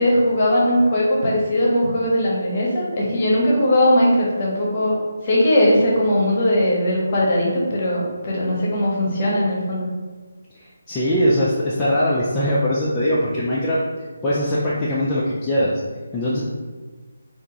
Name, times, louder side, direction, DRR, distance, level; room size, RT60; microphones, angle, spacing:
voice 1, 0.0-5.0 5.2-9.9, left 1 dB, 30° left, -4 dB, 0.9 m, -19 dB
voice 2, 10.5-13.8 14.2-15.8 16.1-16.4, equal, 10° left, -9 dB, 0.4 m, -21 dB
3.4 x 2.5 x 2.9 m, 1.4 s
figure-of-eight pair, 150°, 0 cm